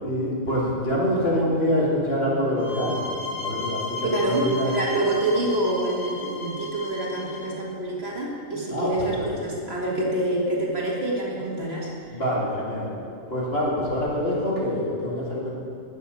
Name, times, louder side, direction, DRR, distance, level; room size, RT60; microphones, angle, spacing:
voice 1, 0.0-3.1 3.4-4.7 8.7-9.3 12.1-12.9 13.3-15.5, equal, 45° left, -6 dB, 3.0 m, -25 dB
sound 1, 2.6-7.5, left 2 dB, 20° right, 3.4 m, -34 dB
voice 2, 4.1-11.9, right 1 dB, 45° right, -3 dB, 2.1 m, -26 dB
12.0 x 6.9 x 8.4 m, 2.4 s
omnidirectional pair, 1.4 m